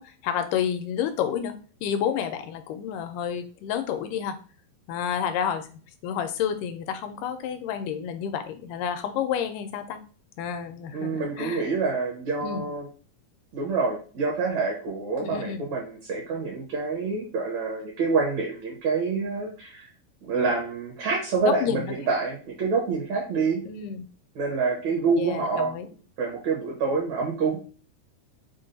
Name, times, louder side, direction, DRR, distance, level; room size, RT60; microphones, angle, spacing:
voice 1, 0.0-1.5 1.8-4.4 4.9-5.7 6.0-10.0 10.4-11.7 12.4-12.6 15.2-15.7 21.6-21.9 23.6-24.1 25.2-25.9, left 8 dB, 80° left, 8 dB, 2.0 m, -30 dB
voice 2, 10.9-12.9 13.5-19.9 20.2-23.6 24.4-25.7 26.2-27.6, right 4 dB, 65° right, -2 dB, 2.1 m, -27 dB
5.5 x 2.3 x 3.9 m, 0.40 s
omnidirectional pair, 3.9 m